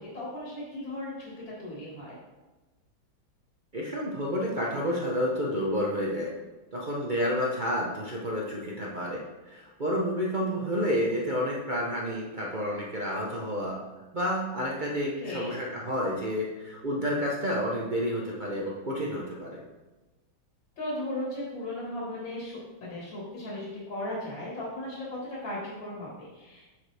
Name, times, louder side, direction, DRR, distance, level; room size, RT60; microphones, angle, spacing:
voice 1, 0.0-2.2 15.2-15.6 20.8-26.7, left 1 dB, 70° left, -6 dB, 2.6 m, -36 dB
voice 2, 3.7-6.3 6.7-13.8 14.1-19.6, equal, 60° right, -4 dB, 0.4 m, -30 dB
7.0 x 6.9 x 3.4 m, 1.1 s
omnidirectional pair, 2.2 m